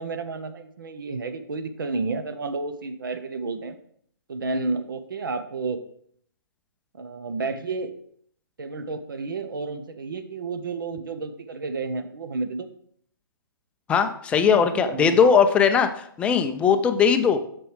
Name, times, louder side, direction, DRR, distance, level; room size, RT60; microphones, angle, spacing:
voice 1, 0.0-3.8 4.3-5.8 6.9-7.9 8.6-12.7 14.7-15.2, right 3 dB, 65° right, 10 dB, 0.8 m, -31 dB
voice 2, 13.9-17.4, left 6 dB, 10° left, 8 dB, 0.4 m, -19 dB
7.6 x 6.2 x 3.2 m, 0.65 s
figure-of-eight pair, 130°, 12 cm